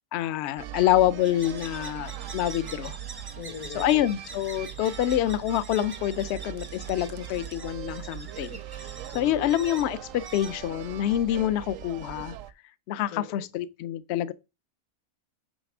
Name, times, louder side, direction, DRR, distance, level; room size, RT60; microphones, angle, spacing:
voice 1, 0.1-3.0 3.7-8.6 9.1-12.4 12.9-14.3, left 12 dB, 65° left, 0.7 m, -26 dB
sound 1, 0.6-12.5, right 11 dB, 70° right, 1.0 m, -40 dB
sound 2, 1.2-11.4, right 3 dB, 30° right, 0.5 m, -45 dB
voice 2, 3.4-4.1 9.1-9.6 13.1-13.5, left 6 dB, 85° left, 2.3 m, -41 dB
9.4 x 3.2 x 6.0 m
omnidirectional pair, 1.5 m